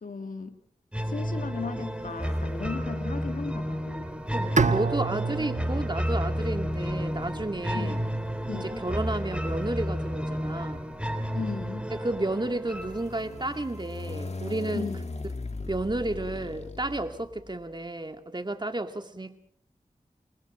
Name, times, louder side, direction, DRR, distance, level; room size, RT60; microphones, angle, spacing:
voice 1, 0.0-0.6 1.1-4.1 7.7-8.0 8.5-8.8 11.3-11.9 14.7-15.0, left 5 dB, 90° left, 7 dB, 2.0 m, -36 dB
sound 1, 0.9-13.9, equal, 10° right, 3.0 m, -31 dB
sound 2, 2.3-3.0 4.0-17.7, left 3 dB, 55° left, 1.7 m, -42 dB
voice 2, 4.3-8.0 8.5-10.9 11.9-14.9 15.7-19.4, right 2 dB, 35° right, 7 dB, 2.5 m, -32 dB
Bowed string instrument, 4.6-7.6, right 4 dB, 65° right, 1.0 m, -29 dB
28.0 x 23.0 x 5.2 m, 0.62 s
wide cardioid pair, 50°, 14 cm